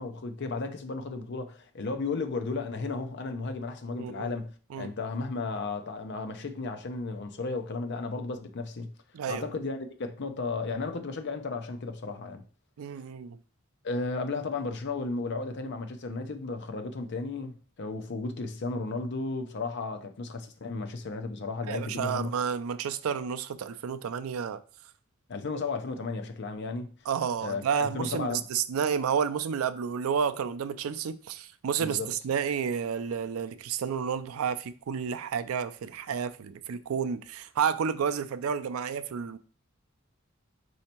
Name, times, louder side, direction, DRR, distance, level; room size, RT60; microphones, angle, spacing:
voice 1, 0.0-8.9 9.3-12.4 13.8-22.3 25.3-26.9 27.4-28.5 31.8-32.1, left 3 dB, 55° left, 0.6 m, -34 dB
voice 2, 3.9-4.3 4.7-4.9 9.1-9.5 12.8-13.4 21.6-24.6 27.1-39.4, right 7 dB, 85° right, 0.4 m, -31 dB
4.3 x 2.8 x 4.3 m
head